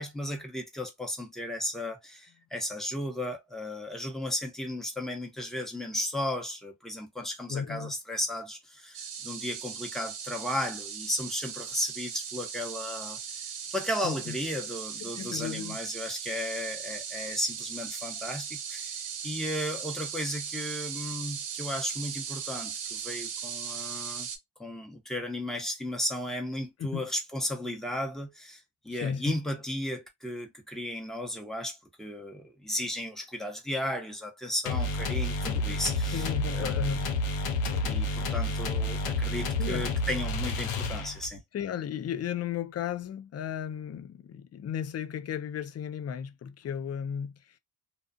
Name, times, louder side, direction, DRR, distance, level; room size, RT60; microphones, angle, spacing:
voice 1, 0.0-24.3 24.6-36.8 37.8-41.4, left 1 dB, ahead, 0.9 m, -35 dB
voice 2, 7.5-7.9 14.0-14.4 15.0-15.8 26.8-27.1 28.9-29.4 36.1-37.1 37.9-38.2 39.6-39.9 41.5-47.6, left 8 dB, 35° left, 0.4 m, -35 dB
sound 1, 8.9-24.4, right 7 dB, 60° right, 0.9 m, -38 dB
sound 2, 34.7-41.4, left 2 dB, 85° left, 0.8 m, -30 dB
2.5 x 2.2 x 2.5 m
cardioid pair, 75°, 50 cm